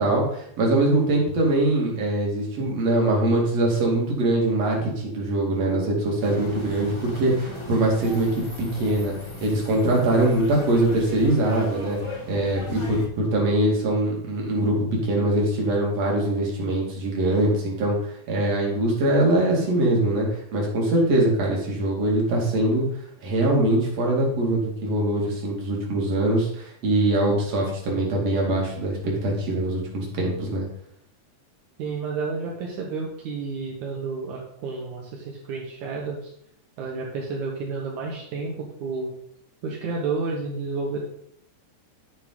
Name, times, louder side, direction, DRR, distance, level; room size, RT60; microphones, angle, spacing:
voice 1, 0.0-9.1 9.4-12.0 12.3-22.8 23.2-30.6, right 1 dB, 60° right, -2 dB, 3.4 m, -23 dB
sound 1, 6.2-13.1, left 1 dB, 35° left, 0.4 m, -38 dB
voice 2, 31.8-36.3 36.8-39.1 39.6-41.0, right 4 dB, 80° right, -2 dB, 2.7 m, -31 dB
10.0 x 6.9 x 3.9 m, 0.68 s
omnidirectional pair, 3.4 m